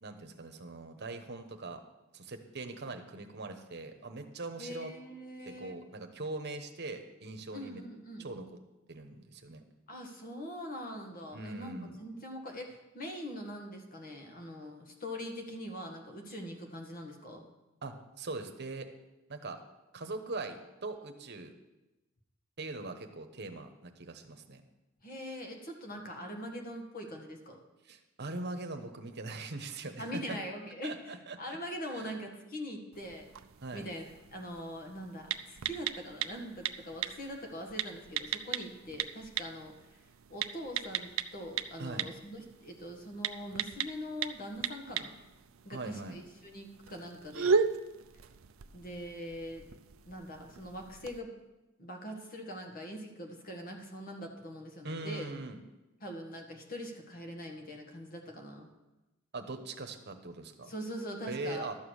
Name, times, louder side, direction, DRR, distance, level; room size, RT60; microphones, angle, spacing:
voice 1, 0.0-1.8 2.1-4.9 5.4-7.8 8.2-8.5 8.9-9.6 11.3-12.0 17.8-18.9 19.3-19.6 19.9-21.5 22.6-24.6 27.8-30.4 30.8-31.6 31.9-32.2 33.6-33.9 41.8-42.1 45.7-46.2 54.8-55.6 59.3-60.7 61.3-61.8, right 2 dB, 55° right, 6 dB, 1.1 m, -41 dB
voice 2, 4.6-5.8 7.5-8.3 9.9-17.4 25.0-27.6 30.0-31.0 31.4-33.4 33.7-40.0 40.3-45.2 45.7-47.6 48.7-49.6 50.1-51.3 51.8-55.3 56.0-58.7 60.7-61.7, equal, 45° left, 3 dB, 1.8 m, -42 dB
sound 1, 32.9-51.2, right 6 dB, 75° right, 0.5 m, -38 dB
12.5 x 7.2 x 6.4 m, 1.0 s
head